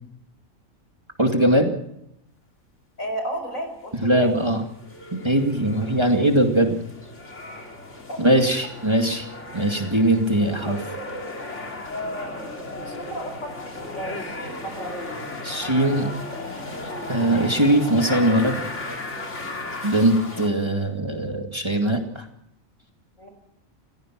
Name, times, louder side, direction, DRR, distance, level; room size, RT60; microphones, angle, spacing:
voice 1, 1.2-1.7 4.0-4.6 5.1-6.8 8.2-9.3 9.5-10.8 15.4-16.1 17.1-18.6 19.8-22.2, right 1 dB, 20° right, 3 dB, 2.3 m, -20 dB
voice 2, 3.0-4.3 8.1-8.2 11.9-12.4 12.7-15.0 23.2-23.3, equal, 75° left, 6 dB, 5.5 m, -33 dB
sound 1, 4.4-20.5, left 2 dB, 60° left, 3.3 m, -35 dB
28.5 x 15.0 x 6.1 m, 0.77 s
omnidirectional pair, 1.4 m